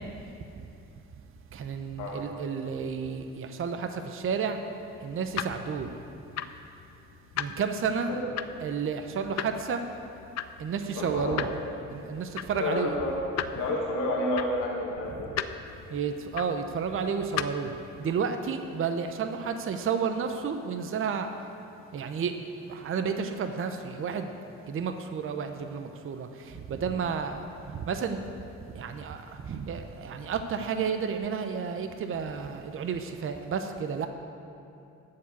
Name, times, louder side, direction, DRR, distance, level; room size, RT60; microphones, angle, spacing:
voice 1, 1.5-4.6 5.0-5.9 7.4-8.1 8.6-9.8 10.6-11.5 11.9-13.0 15.9-17.7 18.0-21.3 21.9-22.3 22.7-24.3 24.7-27.4 27.7-28.2 28.7-34.1, right 6 dB, 45° right, 7 dB, 0.7 m, -31 dB
sound 1, 4.8-17.8, left 9 dB, 60° left, 0.5 m, -39 dB
voice 2, 11.0-11.4 12.5-13.1 13.5-15.3, left 1 dB, 90° left, -3 dB, 1.9 m, -30 dB
13.5 x 4.7 x 8.4 m, 2.7 s
cardioid pair, 90°, 30 cm